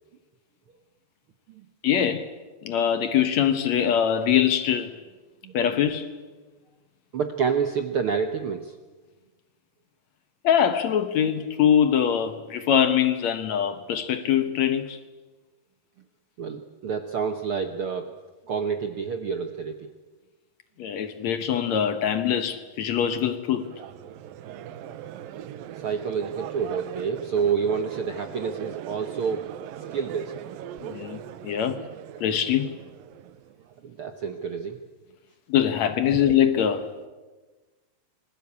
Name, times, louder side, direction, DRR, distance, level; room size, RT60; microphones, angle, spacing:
voice 1, 1.8-2.3 2.7-4.9 5.5-6.1 10.4-15.0 20.8-23.7 30.8-31.2 31.4-31.8 32.2-32.7 35.5-36.8, left 9 dB, 65° left, 2.1 m, -23 dB
voice 2, 7.1-8.7 16.4-18.1 18.5-19.9 25.8-29.4 29.9-30.3 33.8-34.8, right 6 dB, 60° right, 1.4 m, -28 dB
Crowd, 23.6-33.7, right 10 dB, 90° right, 2.8 m, -40 dB
27.5 x 21.0 x 8.5 m
omnidirectional pair, 3.9 m